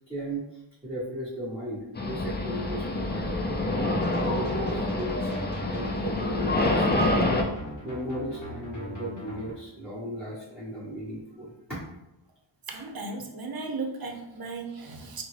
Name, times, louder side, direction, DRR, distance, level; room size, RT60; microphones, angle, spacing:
voice 1, 0.0-3.7 4.1-5.4 5.7-7.3 7.8-11.8, right 1 dB, 5° right, -11 dB, 1.0 m, -36 dB
sound 1, 2.0-7.4, left 2 dB, 25° left, 0.4 m, -27 dB
sound 2, 3.9-9.5, equal, 40° left, 1.0 m, -40 dB
voice 2, 12.7-15.2, right 3 dB, 50° right, 3 dB, 0.6 m, -36 dB
3.7 x 2.1 x 3.2 m, 0.89 s
wide cardioid pair, 55°, 47 cm